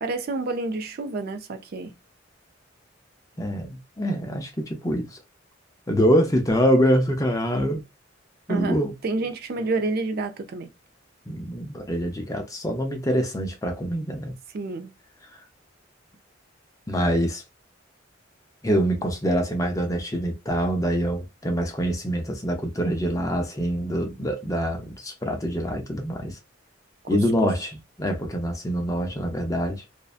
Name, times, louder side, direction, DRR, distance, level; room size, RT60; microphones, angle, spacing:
voice 1, 0.0-1.9 8.5-10.7 14.5-14.9 27.0-27.5, right 3 dB, 50° right, 0.4 m, -29 dB
voice 2, 3.4-5.2 5.9-7.8 8.5-8.9 11.3-14.3 16.9-17.4 18.6-26.4 27.1-27.7 28.0-29.8, equal, 15° left, 0.5 m, -25 dB
2.6 x 2.1 x 2.4 m
head